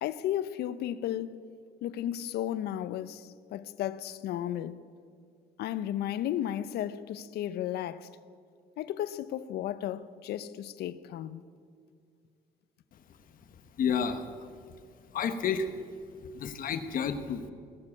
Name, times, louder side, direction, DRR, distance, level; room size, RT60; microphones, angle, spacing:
voice 1, 0.0-1.4 1.8-4.8 5.6-8.1 8.8-11.4, left 11 dB, 70° left, 0.7 m, -34 dB
voice 2, 13.8-14.5 15.1-15.7 16.3-17.5, left 6 dB, 55° left, 1.1 m, -30 dB
19.0 x 7.6 x 8.6 m
cardioid pair, 110°, 17 cm